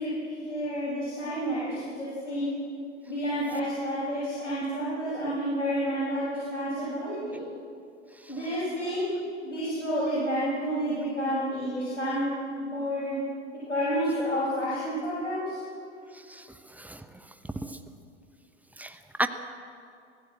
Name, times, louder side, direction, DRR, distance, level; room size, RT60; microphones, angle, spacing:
voice 1, 0.0-2.5 3.0-7.4 8.3-9.1 9.4-12.3 12.6-13.2 13.7-15.6, equal, 85° left, -9 dB, 7.7 m, -30 dB
voice 2, 16.1-17.0 17.6-17.8 18.8-19.3, right 1 dB, 5° right, 9 dB, 1.0 m, -34 dB
25.0 x 16.0 x 7.8 m, 2.5 s
figure-of-eight pair, 90°, 35 cm